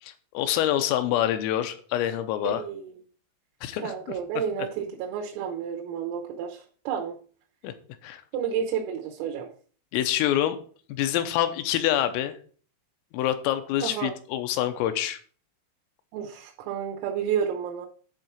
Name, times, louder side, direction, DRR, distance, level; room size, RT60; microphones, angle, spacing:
voice 1, 0.0-2.6 3.6-3.9 7.6-7.7 8.0-8.2 9.9-10.6 10.9-12.4 13.1-15.2, left 12 dB, 85° left, 9 dB, 3.4 m, -26 dB
voice 2, 2.4-2.9 3.8-7.2 8.3-9.5 13.8-14.1 16.1-17.9, right 8 dB, 85° right, 1 dB, 3.7 m, -31 dB
10.5 x 3.9 x 5.9 m, 0.43 s
omnidirectional pair, 5.9 m